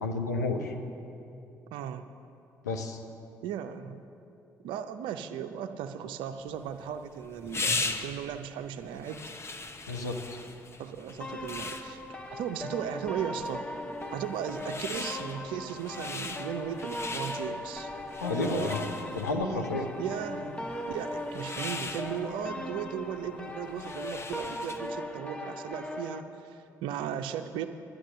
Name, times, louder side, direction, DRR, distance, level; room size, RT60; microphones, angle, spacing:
voice 1, 0.0-0.8 2.6-3.0 9.9-10.2 18.2-18.8 19.1-19.8, left 3 dB, 90° left, 3 dB, 0.8 m, -31 dB
voice 2, 1.7-2.1 3.4-4.0 4.6-9.2 10.8-13.6 14.1-17.9 18.3-18.8 19.2-19.7 20.0-20.6 20.9-27.7, right 9 dB, 70° right, 8 dB, 0.6 m, -36 dB
sound 1, 6.5-25.0, left 3 dB, 30° left, 0.9 m, -40 dB
sound 2, 11.2-26.2, left 1 dB, 15° left, 1.1 m, -39 dB
11.5 x 9.9 x 6.5 m, 2.7 s
hypercardioid pair, 45°, 9 cm